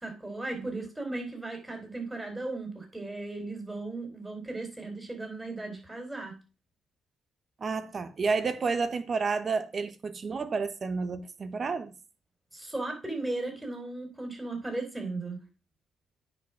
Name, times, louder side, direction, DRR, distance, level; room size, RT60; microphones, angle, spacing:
voice 1, 0.0-6.3 12.5-15.4, right 2 dB, 10° right, 4.6 m, -36 dB
voice 2, 7.6-11.9, right 4 dB, 45° right, 1.2 m, -30 dB
9.1 x 5.3 x 6.1 m
supercardioid pair, 60°, 0 cm